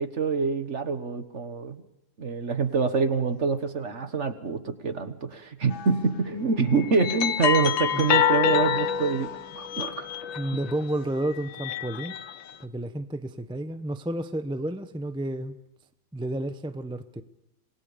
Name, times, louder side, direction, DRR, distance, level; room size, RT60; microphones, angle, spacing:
voice 1, 0.0-1.8 2.2-10.1 10.5-10.6, right 5 dB, 40° right, 1.6 m, -26 dB
sound 1, 5.7-6.0 6.7-10.8 11.4-12.5, left 9 dB, 85° left, 1.8 m, -27 dB
voice 2, 10.4-12.2 12.6-15.6 16.1-17.2, right 1 dB, 5° right, 0.5 m, -31 dB
27.0 x 20.0 x 6.9 m
omnidirectional pair, 2.1 m